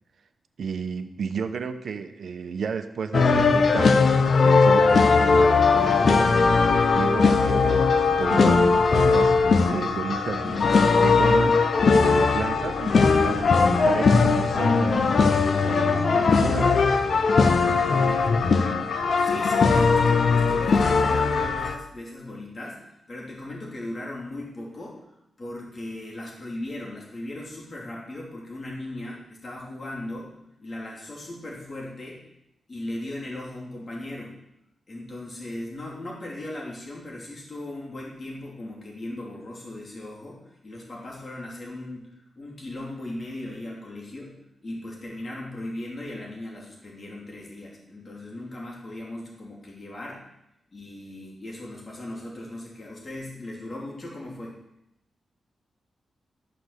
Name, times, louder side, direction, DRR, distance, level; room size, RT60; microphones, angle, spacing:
voice 1, 0.6-11.6 12.0-17.0, right 6 dB, 70° right, 8 dB, 1.0 m, -32 dB
sound 1, 3.1-21.8, left 4 dB, 60° left, 0.9 m, -19 dB
voice 2, 19.2-22.8 23.1-25.0 25.4-32.2 32.7-34.4 34.9-44.4 44.6-50.2 50.7-54.6, left 1 dB, 35° left, -3 dB, 3.0 m, -37 dB
12.5 x 6.1 x 6.8 m, 0.84 s
wide cardioid pair, 105°, 0 cm